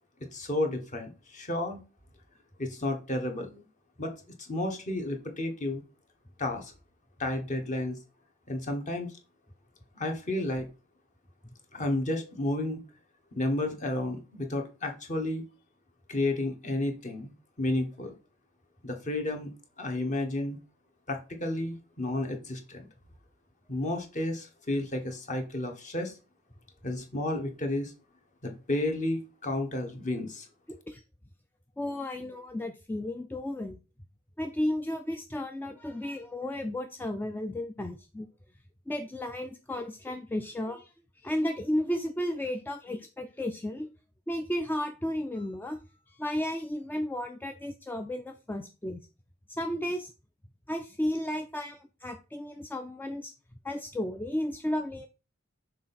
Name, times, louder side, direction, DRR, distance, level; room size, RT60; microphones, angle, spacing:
voice 1, 0.3-1.8 2.6-3.6 4.0-5.8 6.4-6.7 7.2-8.0 8.5-9.1 10.0-10.7 11.7-12.8 13.3-15.4 16.1-18.1 18.8-19.5 19.8-20.6 21.1-22.9 23.7-26.1 26.8-27.9 28.4-30.5, left 1 dB, 35° left, 4 dB, 1.3 m, -32 dB
voice 2, 30.7-31.0 31.8-33.8 34.4-38.3 38.9-40.9 41.2-43.9 44.3-45.8 46.1-49.0 49.5-50.1 50.7-53.3 53.6-55.1, left 1 dB, 10° left, 6 dB, 0.4 m, -33 dB
6.2 x 3.9 x 4.2 m, 0.32 s
head